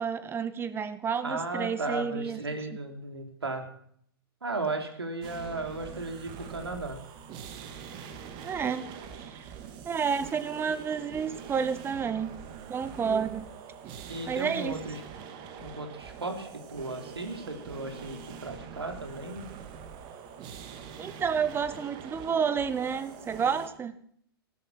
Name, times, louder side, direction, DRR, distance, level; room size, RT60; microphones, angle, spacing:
voice 1, 0.0-2.4 8.4-8.9 9.2-9.4 9.8-12.3 12.7-13.5 14.3-14.8 21.0-24.0, right 6 dB, 20° right, 13 dB, 1.1 m, -30 dB
voice 2, 1.2-3.7 4.4-7.0 14.1-15.0 15.6-19.5, right 2 dB, 90° right, 5 dB, 3.3 m, -35 dB
sound 1, 5.2-23.7, right 7 dB, 35° right, 2.2 m, -44 dB
15.0 x 12.5 x 5.9 m, 0.64 s
hypercardioid pair, 110°, 13 cm